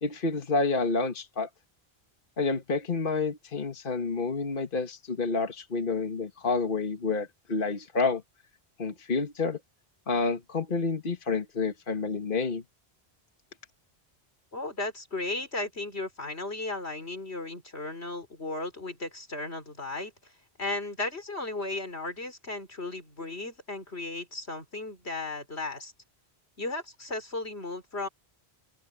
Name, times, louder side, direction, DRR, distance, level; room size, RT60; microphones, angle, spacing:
voice 1, 0.0-1.5 2.4-8.2 8.8-9.6 10.1-12.6, left 4 dB, 55° left, 1.7 m, -29 dB
voice 2, 14.5-20.1 20.6-25.9 26.6-28.1, left 2 dB, 90° left, 4.8 m, -35 dB
open air
omnidirectional pair, 1.1 m